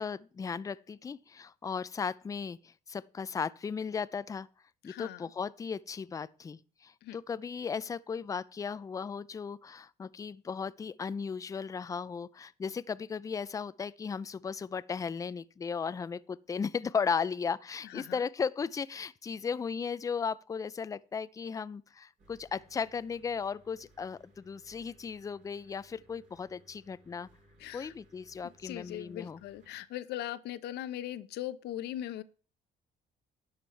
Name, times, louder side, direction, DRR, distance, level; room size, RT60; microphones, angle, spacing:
voice 1, 0.0-4.5 4.8-27.3 27.7-29.4, left 6 dB, 20° left, 0.4 m, -36 dB
voice 2, 4.8-5.2 7.0-7.2 17.8-18.2 27.6-27.9 28.6-32.2, left 13 dB, 75° left, 0.8 m, -39 dB
sound 1, 22.2-29.7, equal, 50° right, 5.7 m, -63 dB
11.5 x 7.3 x 4.5 m
cardioid pair, 110°, 17 cm